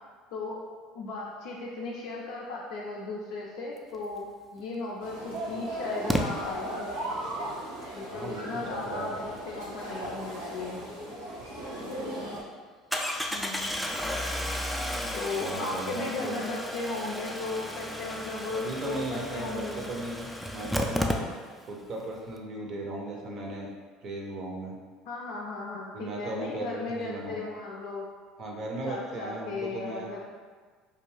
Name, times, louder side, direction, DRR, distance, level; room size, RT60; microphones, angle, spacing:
voice 1, 0.3-0.6 0.9-4.3 4.5-6.7 7.9-10.8 13.3-13.9 15.1-19.9 25.1-28.1 28.9-30.2, left 3 dB, 70° left, -4 dB, 0.4 m, -36 dB
Engine starting, 4.6-4.7 6.1-6.2 11.3-11.4 11.7-11.8 12.9-21.7 22.0-22.1 22.3-22.4, equal, ahead, 0.3 m, -33 dB
sound 1, 5.0-12.4, equal, 90° right, 0.8 m, -37 dB
voice 2, 8.1-9.1 15.4-16.4 18.5-21.3 21.6-23.7 24.0-24.7 25.9-27.4 28.4-30.1, right 2 dB, 50° right, -1 dB, 0.6 m, -36 dB
2.5 x 2.3 x 3.1 m, 1.5 s
hypercardioid pair, 75°, 0 cm